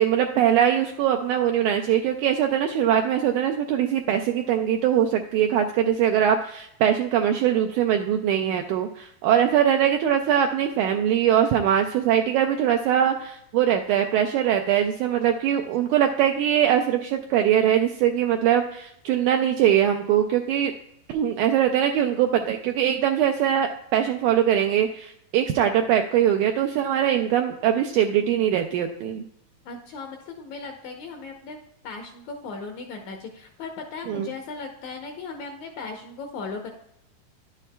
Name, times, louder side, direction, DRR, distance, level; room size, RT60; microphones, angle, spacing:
voice 1, 0.0-20.7 21.1-29.3 34.1-34.3, right 10 dB, 85° right, 5 dB, 1.8 m, -22 dB
voice 2, 29.7-31.6 31.8-36.7, left 4 dB, 75° left, 3 dB, 1.7 m, -37 dB
10.5 x 7.4 x 2.2 m, 0.76 s
omnidirectional pair, 4.0 m